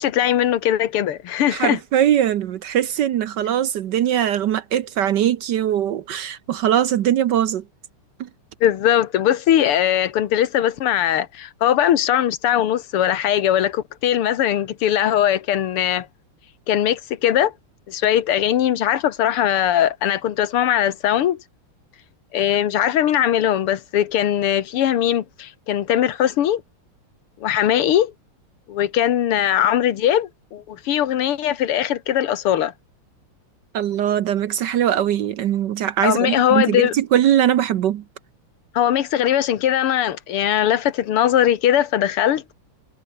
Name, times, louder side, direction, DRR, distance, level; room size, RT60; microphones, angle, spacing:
voice 1, 0.0-1.8 8.6-16.1 16.7-17.5 17.9-21.4 22.3-26.6 27.4-28.1 28.7-32.7 36.0-36.9 38.7-42.4, left 11 dB, 85° left, 2.1 m, -20 dB
voice 2, 1.5-7.6 8.2-8.3 33.7-38.0, right 10 dB, 65° right, 1.2 m, -21 dB
omnidirectional pair, 2.4 m